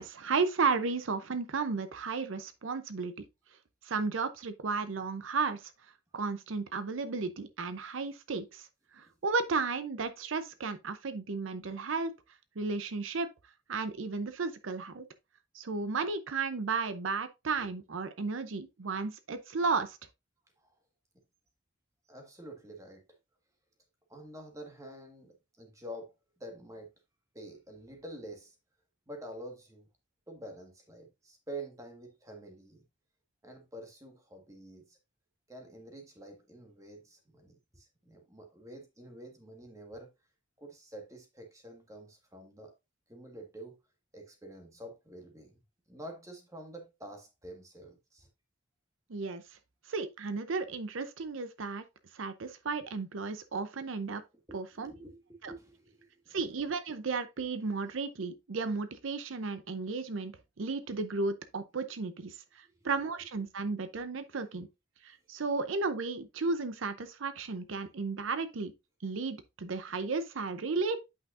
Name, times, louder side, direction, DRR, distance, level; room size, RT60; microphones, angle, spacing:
voice 1, 0.0-3.1 3.8-5.7 6.1-8.7 8.9-12.1 12.6-13.3 13.7-15.0 15.5-20.0 49.1-49.4 49.9-51.8 52.1-54.2 54.5-54.9 55.4-55.5 56.3-64.7 65.0-68.7 69.0-71.0, right 4 dB, 80° right, 0.6 m, -34 dB
voice 2, 22.1-23.2 24.1-26.9 27.3-28.5 29.1-29.9 30.3-32.8 33.4-35.0 35.5-40.1 40.6-42.7 43.1-43.8 44.1-45.6 45.9-48.3 54.5-56.4 62.6-62.9, right 1 dB, 15° right, 1.5 m, -48 dB
8.5 x 5.6 x 2.5 m
head